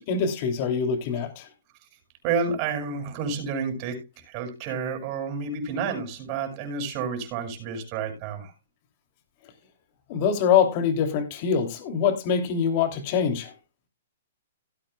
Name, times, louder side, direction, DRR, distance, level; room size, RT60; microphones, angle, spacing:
voice 1, 0.0-1.5 10.1-13.5, left 7 dB, 40° left, 2.8 m, -24 dB
voice 2, 2.2-4.0 4.2-8.5, right 5 dB, 30° right, 7.2 m, -30 dB
18.0 x 8.9 x 2.3 m
hypercardioid pair, 155°, 0 cm